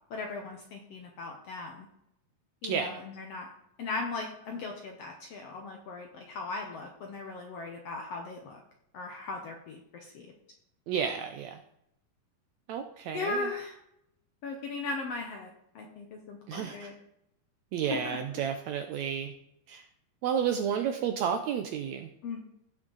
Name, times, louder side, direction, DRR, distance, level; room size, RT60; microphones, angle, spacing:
voice 1, 0.1-1.9 2.6-3.5 3.8-8.6 8.9-10.3 13.1-13.8 14.4-15.5 15.7-16.9 17.9-18.4 22.2-22.4, left 3 dB, 65° left, 2 dB, 1.6 m, -38 dB
voice 2, 10.9-11.6 12.7-13.5 16.5-16.9 17.7-19.3 19.7-19.8 20.2-22.1, right 8 dB, 85° right, 7 dB, 1.6 m, -31 dB
16.0 x 6.2 x 4.0 m, 0.78 s
omnidirectional pair, 4.0 m